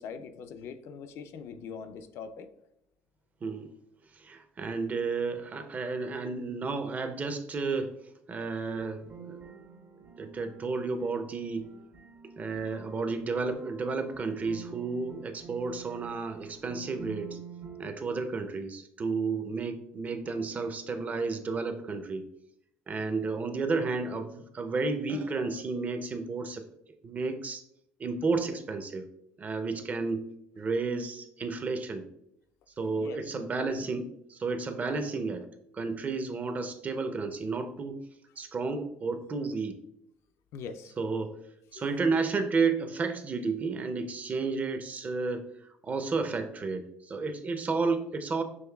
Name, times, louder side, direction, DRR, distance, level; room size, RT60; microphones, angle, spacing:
voice 1, 0.0-2.5 32.9-33.9 40.5-40.9 41.7-41.9, left 6 dB, 65° left, 9 dB, 0.4 m, -42 dB
voice 2, 4.2-7.9 8.3-9.4 10.2-11.7 12.4-17.4 17.8-22.2 22.9-26.6 27.0-27.6 28.0-29.1 29.4-30.2 30.6-32.0 32.8-35.5 35.7-38.0 38.4-39.8 41.0-41.4 41.7-45.5 45.8-48.4, right 4 dB, 30° right, 8 dB, 0.5 m, -32 dB
sound 1, 8.7-17.9, right 6 dB, 60° right, 0.9 m, -48 dB
6.3 x 3.1 x 2.3 m, 0.76 s
supercardioid pair, 95°, 5 cm